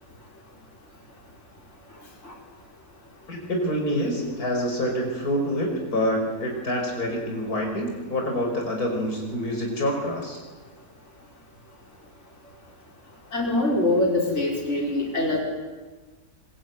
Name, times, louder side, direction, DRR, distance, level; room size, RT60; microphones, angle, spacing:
voice 1, 3.3-10.4, equal, 85° left, 1 dB, 5.9 m, -27 dB
voice 2, 13.3-15.4, left 2 dB, 50° left, -1 dB, 5.6 m, -23 dB
25.0 x 22.5 x 9.4 m, 1.3 s
omnidirectional pair, 1.6 m